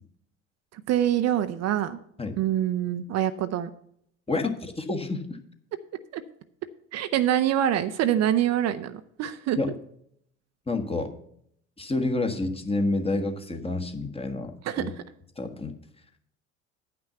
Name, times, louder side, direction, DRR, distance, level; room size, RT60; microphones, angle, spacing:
voice 1, 0.7-2.0 2.4-3.7 6.1-6.2 6.9-9.6 14.6-14.8, right 11 dB, 45° right, 10 dB, 0.6 m, -25 dB
voice 2, 4.3-5.2 9.6-9.7 10.7-11.1 11.8-14.9 15.4-15.7, left 2 dB, 15° left, 4 dB, 1.4 m, -28 dB
9.5 x 5.9 x 6.7 m, 0.69 s
hypercardioid pair, 65°, 37 cm